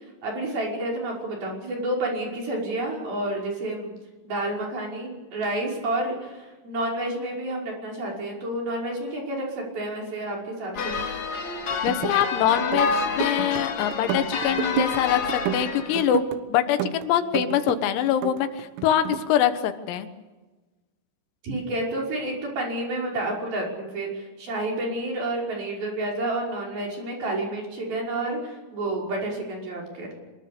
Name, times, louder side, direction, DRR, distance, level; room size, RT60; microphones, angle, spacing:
voice 1, 0.2-3.9 4.2-11.1 21.4-30.1, right 1 dB, 45° right, -1 dB, 7.2 m, -30 dB
sound 1, 10.7-16.1, left 5 dB, 50° left, 2.4 m, -28 dB
sound 2, 11.7-12.3 12.6-13.6 13.9-15.0 15.3-16.4 16.8-17.8 18.1-19.2, right 11 dB, 85° right, 3.9 m, -31 dB
voice 2, 11.8-20.1, left 10 dB, 85° left, 9 dB, 4.1 m, -24 dB
25.0 x 22.0 x 6.9 m, 1.2 s
omnidirectional pair, 5.9 m